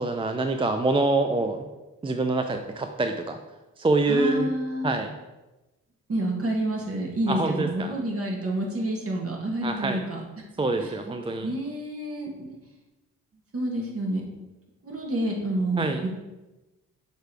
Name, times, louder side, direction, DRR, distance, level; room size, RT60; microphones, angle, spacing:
voice 1, 0.0-1.6 2.0-3.4 3.8-4.5 4.8-5.1 7.3-8.0 9.6-10.0 10.6-11.5 15.8-16.0, right 2 dB, 15° right, 5 dB, 0.4 m, -25 dB
voice 2, 4.1-4.9 6.1-10.9 11.4-12.6 13.5-14.2 14.8-16.1, right 1 dB, 45° right, -1 dB, 1.7 m, -29 dB
6.8 x 3.3 x 4.6 m, 1.1 s
supercardioid pair, 65°, 32 cm